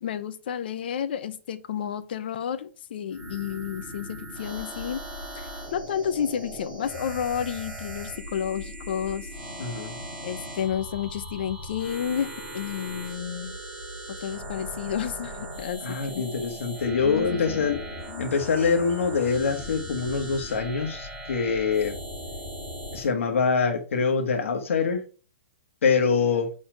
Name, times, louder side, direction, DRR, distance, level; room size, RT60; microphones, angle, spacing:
voice 1, 0.0-5.0 5.3-9.3 10.2-13.6 14.2-16.2 17.0-17.7 18.1-18.2, left 9 dB, 45° left, 0.7 m, -31 dB
sound 1, 3.1-23.1, equal, 15° right, 3.0 m, -39 dB
voice 2, 9.6-10.0 15.8-17.8 18.2-22.0 22.9-25.0 25.8-26.5, left 5 dB, 70° left, 1.5 m, -25 dB
6.4 x 4.2 x 5.1 m
hypercardioid pair, 180°, 7 cm